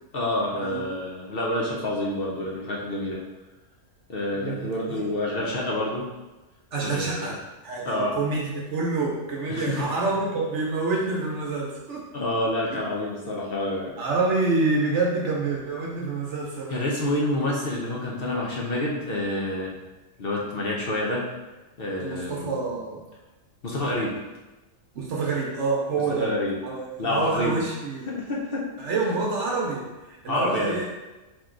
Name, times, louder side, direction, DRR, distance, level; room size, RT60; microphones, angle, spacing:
voice 1, 0.1-3.2 4.1-6.1 6.8-7.3 7.8-8.2 9.5-9.8 12.1-13.9 16.7-19.7 20.2-21.2 21.8-22.6 23.6-24.1 26.2-26.5 27.0-27.6 28.1-28.6 30.3-30.8, left 1 dB, 50° left, -3 dB, 0.9 m, -28 dB
voice 2, 4.3-5.0 6.7-7.4 7.6-12.0 14.0-16.8 22.0-23.0 24.9-26.3 26.6-28.0 28.8-30.9, right 3 dB, 65° right, -3 dB, 1.0 m, -27 dB
4.5 x 3.0 x 3.7 m, 1.1 s
omnidirectional pair, 1.4 m